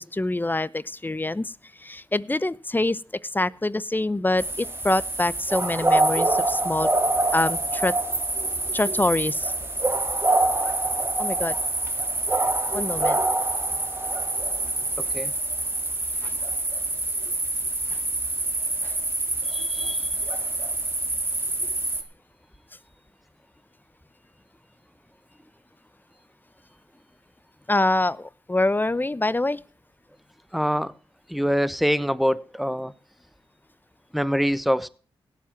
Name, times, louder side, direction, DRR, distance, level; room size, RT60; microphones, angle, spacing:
voice 1, 0.0-1.5 1.8-6.9 7.3-7.9 8.7-9.5 11.2-11.6 12.7-13.2 16.2-16.4 17.9-18.0 18.8-18.9 27.7-29.6, left 2 dB, 20° left, 0.8 m, -25 dB
sound 1, 4.4-22.0, right 2 dB, 25° right, 2.8 m, -26 dB
voice 2, 15.0-15.3 19.5-20.0 30.5-30.9 31.3-32.9 34.1-34.9, equal, ahead, 1.1 m, -25 dB
17.0 x 7.5 x 5.9 m
cardioid pair, 50°, 9 cm